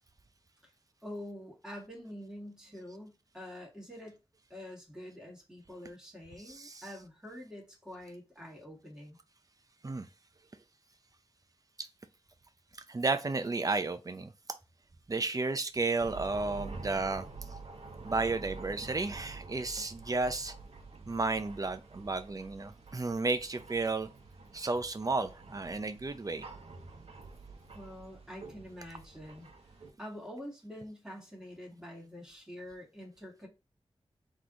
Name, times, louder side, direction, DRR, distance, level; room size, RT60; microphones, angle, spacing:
voice 1, 1.0-4.2 4.5-9.2 27.7-29.5 30.0-33.5, left 1 dB, 5° right, 2.0 m, -46 dB
voice 2, 6.4-7.0 9.8-10.1 12.9-14.3 15.1-17.3 18.0-20.5 21.1-24.1 24.5-26.5, right 3 dB, 35° right, 0.6 m, -33 dB
sound 1, 16.0-29.9, right 4 dB, 70° right, 0.9 m, -48 dB
3.9 x 3.1 x 3.9 m
wide cardioid pair, 75°, 10 cm